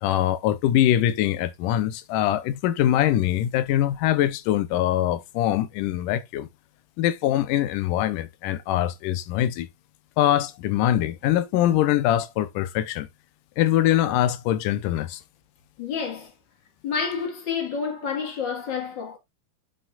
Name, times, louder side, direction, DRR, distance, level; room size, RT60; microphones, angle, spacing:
voice 1, 0.0-6.5 7.0-9.7 10.2-13.1 13.6-15.2, left 12 dB, 90° left, 2.2 m, -23 dB
voice 2, 15.8-16.3 16.8-19.2, left 6 dB, 45° left, 1.7 m, -29 dB
9.8 x 5.2 x 2.3 m
omnidirectional pair, 3.7 m